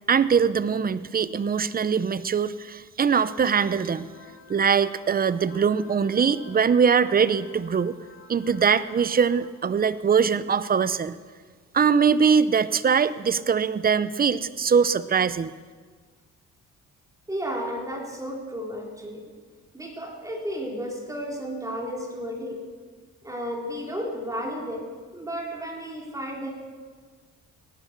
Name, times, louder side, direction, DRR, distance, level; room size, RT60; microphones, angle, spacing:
voice 1, 0.1-4.1 4.5-8.0 8.3-11.2 11.7-15.5, right 6 dB, 30° right, 15 dB, 0.7 m, -22 dB
sound 1, 3.2-9.5, left 4 dB, 50° left, 4.4 m, -50 dB
voice 2, 17.3-19.2 19.7-22.6 23.2-24.9 25.1-26.5, equal, 10° right, -1 dB, 4.1 m, -33 dB
17.5 x 11.5 x 6.7 m, 1.6 s
cardioid pair, 90°, 30 cm